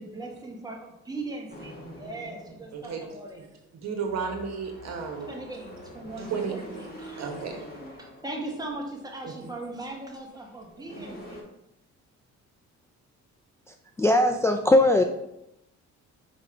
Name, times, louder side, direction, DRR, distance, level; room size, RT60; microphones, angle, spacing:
voice 1, 0.0-3.4 4.1-4.3 5.3-7.3 8.0-11.4, right 2 dB, 15° right, 0 dB, 1.5 m, -39 dB
sound 1, 1.5-3.1 4.0-8.8 9.4-9.7 10.4-10.5 10.7-11.4, equal, 30° left, 2.1 m, -44 dB
voice 2, 2.7-3.0 3.4-3.5 3.7-5.3 6.3-6.5 7.2-7.6 9.2-9.5, right 6 dB, 60° right, 3 dB, 1.4 m, -33 dB
voice 3, 13.7-15.0, left 1 dB, 10° left, 3 dB, 0.4 m, -20 dB
5.0 x 3.5 x 5.6 m, 0.85 s
cardioid pair, 90°, 30 cm